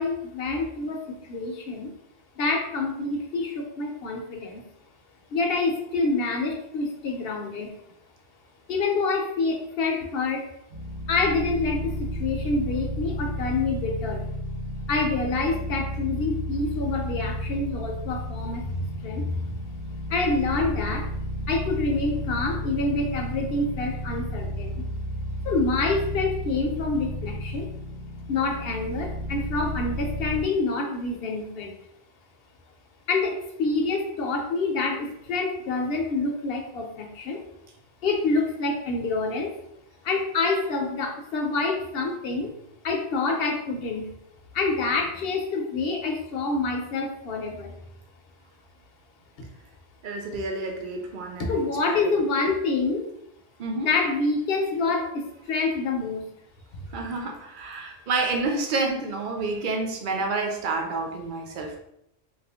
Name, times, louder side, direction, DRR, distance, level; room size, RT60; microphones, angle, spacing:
voice 1, 0.0-1.9 2.4-4.6 5.3-7.7 8.7-10.4 11.1-14.2 14.9-19.4 20.1-21.1 21.5-24.8 25.4-27.7 28.3-31.7 33.1-37.4 38.0-39.5 40.0-42.5 42.8-44.1 44.5-47.7 51.4-53.1 53.8-56.2, left 3 dB, 65° left, 2 dB, 0.8 m, -27 dB
sound 1, 10.7-30.4, equal, 90° right, 1.0 m, -32 dB
voice 2, 50.0-52.2 53.6-53.9 56.9-61.8, right 3 dB, 55° right, 3 dB, 0.7 m, -29 dB
2.9 x 2.5 x 3.4 m, 0.78 s
omnidirectional pair, 1.1 m